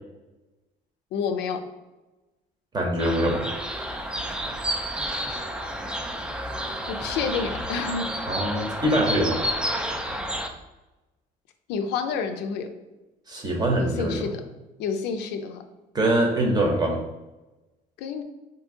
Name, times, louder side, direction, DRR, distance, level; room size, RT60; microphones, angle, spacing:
voice 1, 1.1-1.6 6.9-8.1 11.7-12.7 13.8-14.4 14.8-15.6 18.0-18.2, left 6 dB, 85° left, 7 dB, 0.4 m, -29 dB
voice 2, 2.7-3.5 8.3-9.4 13.3-14.3 15.9-17.0, right 1 dB, 25° right, 1 dB, 0.8 m, -23 dB
sound 1, 3.0-10.5, equal, 5° right, 0.3 m, -30 dB
2.7 x 2.6 x 3.6 m, 1.1 s
cardioid pair, 110°, 17 cm